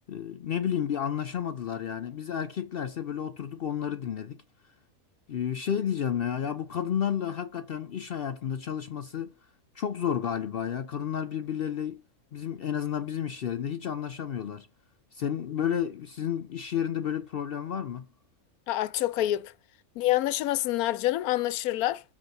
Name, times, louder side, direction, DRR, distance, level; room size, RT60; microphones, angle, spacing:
voice 1, 0.1-4.4 5.3-9.3 9.7-12.0 12.3-14.7 15.1-18.1, left 9 dB, 65° left, 0.6 m, -31 dB
voice 2, 18.7-19.5 20.0-22.0, left 15 dB, 80° left, 1.1 m, -27 dB
7.9 x 3.5 x 6.4 m
omnidirectional pair, 1.5 m